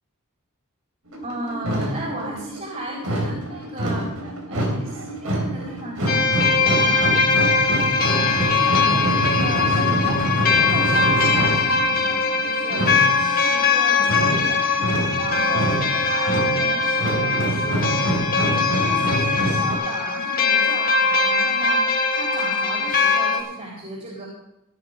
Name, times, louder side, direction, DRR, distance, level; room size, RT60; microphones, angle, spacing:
sound 1, 1.1-19.8, right 1 dB, 85° right, 3.6 m, -26 dB
voice 1, 1.2-4.1 4.5-10.2 10.7-14.8 15.1-18.1 18.3-24.3, right 1 dB, 35° right, -4 dB, 4.1 m, -35 dB
sound 2, 6.1-23.4, left 4 dB, 40° left, 1.5 m, -21 dB
16.5 x 10.5 x 4.0 m, 0.86 s
head